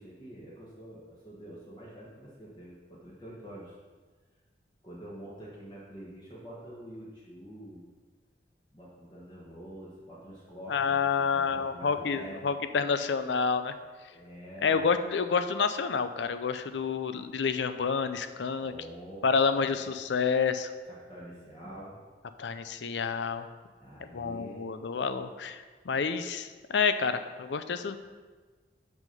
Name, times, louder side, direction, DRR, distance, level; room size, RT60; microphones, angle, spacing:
voice 1, 0.0-3.7 4.8-7.8 8.7-12.5 14.1-14.8 18.6-19.9 20.8-22.0 23.8-24.6, right 1 dB, 25° left, -6 dB, 1.4 m, -46 dB
voice 2, 10.7-13.7 14.6-18.7 19.2-20.7 22.4-23.5 24.1-28.0, left 5 dB, 80° left, 10 dB, 0.5 m, -29 dB
6.0 x 5.7 x 5.3 m, 1.4 s
head